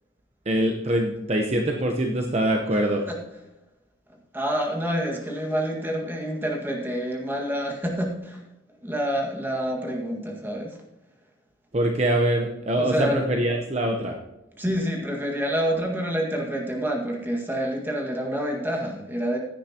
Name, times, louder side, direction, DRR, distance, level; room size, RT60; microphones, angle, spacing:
voice 1, 0.4-3.0 11.7-14.2, right 1 dB, 35° right, 2 dB, 0.9 m, -24 dB
voice 2, 4.3-8.5 8.8-10.8 12.8-13.2 14.6-19.4, equal, 10° right, 0 dB, 1.8 m, -27 dB
16.0 x 9.9 x 2.9 m, 0.95 s
head